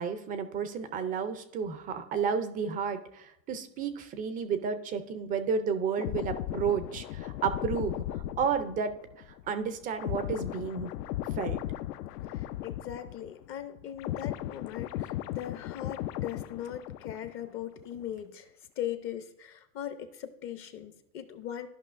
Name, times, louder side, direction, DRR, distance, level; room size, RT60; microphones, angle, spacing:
voice 1, 0.0-7.9 8.4-8.9 9.5-10.9 11.4-11.6, right 6 dB, 20° right, 10 dB, 0.4 m, -31 dB
sound 1, 6.0-13.5 13.7-17.5 17.8-18.0, left 13 dB, 75° left, 0.6 m, -36 dB
voice 2, 12.3-21.7, left 10 dB, 30° left, 10 dB, 0.5 m, -40 dB
13.5 x 5.4 x 2.5 m, 0.83 s
supercardioid pair, 125°, 47 cm